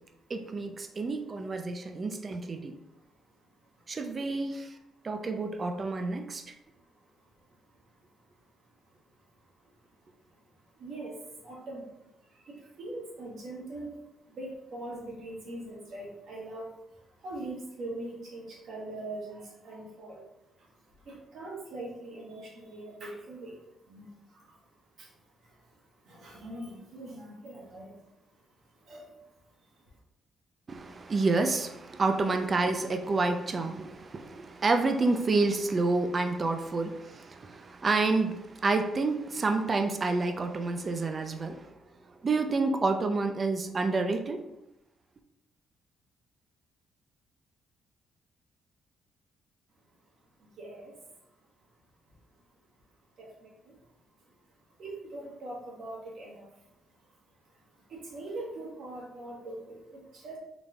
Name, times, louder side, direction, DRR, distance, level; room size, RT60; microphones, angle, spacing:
voice 1, 0.3-2.7 3.9-4.7 5.0-6.5 30.7-41.7 42.1-44.4, right 3 dB, 35° right, 5 dB, 0.5 m, -29 dB
voice 2, 10.8-11.1 11.4-11.8 12.5-13.9 14.3-16.6 17.2-19.4 19.6-20.2 21.1-23.5 23.9-24.0 26.1-27.9 28.9-29.0 50.6-50.9 53.2-53.5 54.8-56.4 57.9-60.4, right 2 dB, 65° right, -3 dB, 1.6 m, -41 dB
4.0 x 3.4 x 3.6 m, 0.87 s
cardioid pair, 90°, 0 cm